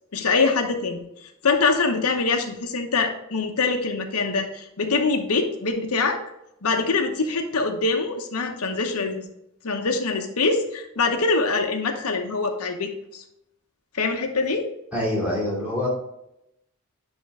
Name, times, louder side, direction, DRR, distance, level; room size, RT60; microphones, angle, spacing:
voice 1, 0.1-6.2 6.6-9.2 9.6-13.2 13.9-14.7, left 4 dB, 85° left, 4 dB, 0.9 m, -24 dB
voice 2, 14.9-15.9, left 1 dB, 5° right, -7 dB, 2.7 m, -25 dB
10.5 x 3.6 x 3.6 m, 0.81 s
head